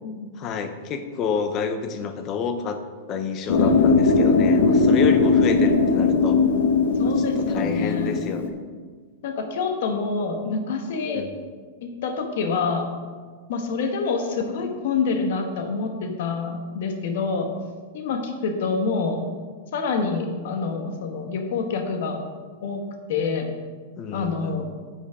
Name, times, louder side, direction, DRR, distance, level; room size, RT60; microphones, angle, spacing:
voice 1, 0.4-2.8 3.1-6.4 7.0-8.5 11.1-11.4 24.0-24.6, left 6 dB, 20° left, 8 dB, 0.6 m, -28 dB
sound 1, 3.5-8.5, left 4 dB, 70° left, 0.9 m, -19 dB
voice 2, 3.6-4.1 7.0-8.2 9.2-11.3 11.8-12.9 13.5-17.5 17.9-19.2 19.7-22.2 22.6-22.8 23.1-23.5 24.1-24.7, left 4 dB, 50° left, 4 dB, 1.2 m, -27 dB
10.0 x 7.2 x 3.5 m, 1.5 s
supercardioid pair, 180°, 0 cm